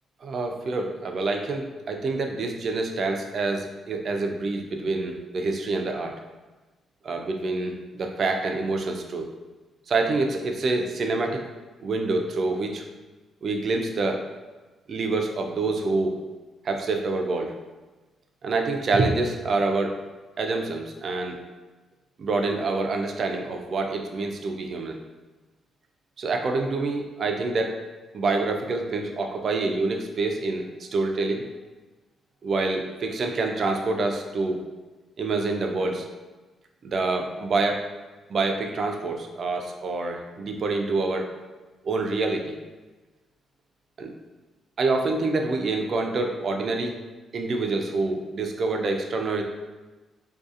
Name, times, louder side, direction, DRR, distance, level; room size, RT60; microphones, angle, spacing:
voice 1, 0.2-6.1 7.0-9.2 9.9-11.4 11.8-12.8 13.4-14.2 14.9-16.1 16.6-17.5 18.4-20.0 20.4-21.4 22.2-25.0 26.2-27.8 28.1-31.4 32.4-34.6 35.2-36.1 36.8-37.8 38.3-41.3 41.8-42.6 44.0-44.1 44.8-47.0 47.3-49.4, right 3 dB, 55° right, 3 dB, 0.3 m, -26 dB
2.6 x 2.3 x 2.4 m, 1.2 s
cardioid pair, 75°, 0 cm